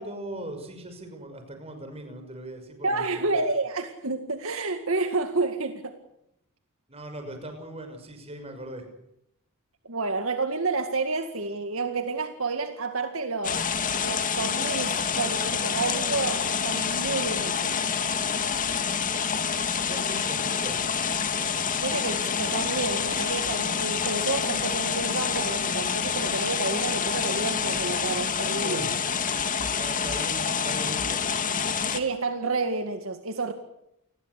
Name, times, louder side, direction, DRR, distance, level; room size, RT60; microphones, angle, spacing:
voice 1, 0.0-3.4 6.9-8.9 19.5-20.9 28.6-29.0 29.8-31.2, right 1 dB, 25° right, 6 dB, 6.2 m, -39 dB
voice 2, 2.8-6.0 9.8-13.7 14.0-17.8 21.8-28.9 31.9-33.5, right 3 dB, 65° right, 7 dB, 2.1 m, -30 dB
sound 1, 13.4-32.0, left 6 dB, 35° left, 2.3 m, -27 dB
29.5 x 21.0 x 8.4 m, 0.81 s
head